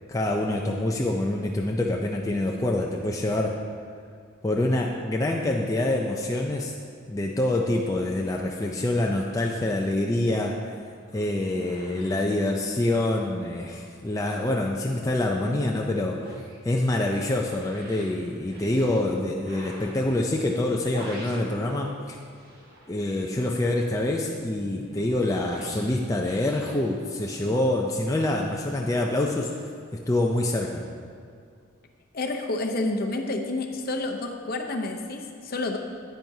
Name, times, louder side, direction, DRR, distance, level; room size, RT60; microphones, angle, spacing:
voice 1, 0.1-3.6 4.4-6.7 7.1-10.6 11.1-16.3 16.6-22.2 22.9-29.5 29.9-30.8, left 1 dB, 15° left, -1 dB, 0.4 m, -26 dB
sound 1, 9.7-14.2 14.5-22.0 22.3-27.5, equal, 45° right, 1.7 m, -46 dB
voice 2, 32.1-35.8, left 2 dB, 45° left, 3 dB, 0.7 m, -29 dB
10.0 x 9.1 x 2.7 m, 2.3 s
head